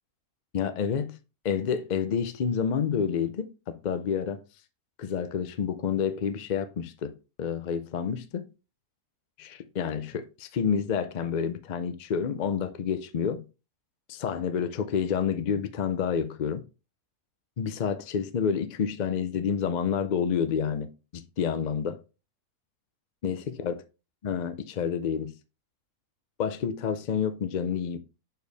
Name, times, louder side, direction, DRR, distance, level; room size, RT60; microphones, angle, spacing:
voice 1, 0.5-1.2 1.4-4.4 5.0-8.5 9.4-13.4 14.1-16.6 17.6-22.0 23.2-23.8 24.2-25.3 26.4-28.0, left 7 dB, 70° left, 0.4 m, -29 dB
6.4 x 4.6 x 3.4 m
omnidirectional pair, 1.6 m